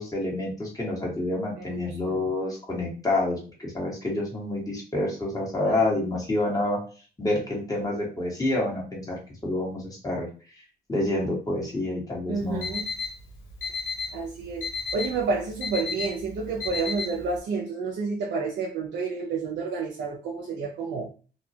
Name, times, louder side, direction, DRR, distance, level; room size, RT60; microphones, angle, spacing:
voice 1, 0.0-6.8 7.2-10.3 10.9-12.7, left 2 dB, 20° left, 1.5 m, -28 dB
voice 2, 1.6-2.2 5.7-6.1 12.3-12.9 14.1-21.1, right 4 dB, 75° right, 0.6 m, -30 dB
Alarm, 12.4-17.4, left 4 dB, 85° left, 0.9 m, -34 dB
2.7 x 2.3 x 2.7 m
cardioid pair, 85°, 19 cm